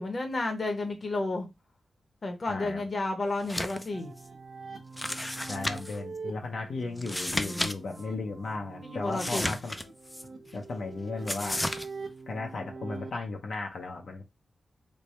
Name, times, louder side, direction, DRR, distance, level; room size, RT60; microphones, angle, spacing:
voice 1, 0.0-1.5 2.2-4.1 8.8-9.6, left 2 dB, 40° left, 0.8 m, -31 dB
voice 2, 2.5-2.8 5.5-9.8 10.5-11.6 12.3-14.2, left 3 dB, 70° left, 0.6 m, -35 dB
sound 1, 3.4-3.9 4.2-4.3 5.0-6.0 7.0-7.7 8.0-8.1 9.1-10.2 11.3-11.9, left 1 dB, 10° left, 0.3 m, -33 dB
sound 2, 3.9-13.1, right 4 dB, 65° right, 0.7 m, -43 dB
3.3 x 2.1 x 4.1 m
wide cardioid pair, 100°, 0 cm